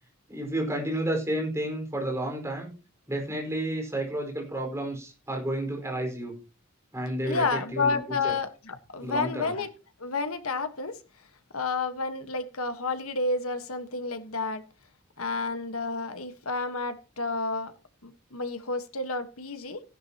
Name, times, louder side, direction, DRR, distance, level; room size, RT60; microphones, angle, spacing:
voice 1, 0.3-2.7 3.1-6.3 6.9-8.3 9.0-9.6, right 1 dB, 15° right, 1 dB, 4.9 m, -31 dB
voice 2, 7.2-9.7 10.0-11.0 11.5-14.6 15.2-17.7 18.0-19.8, left 3 dB, 90° left, 9 dB, 1.5 m, -30 dB
16.0 x 11.0 x 3.0 m, 0.32 s
head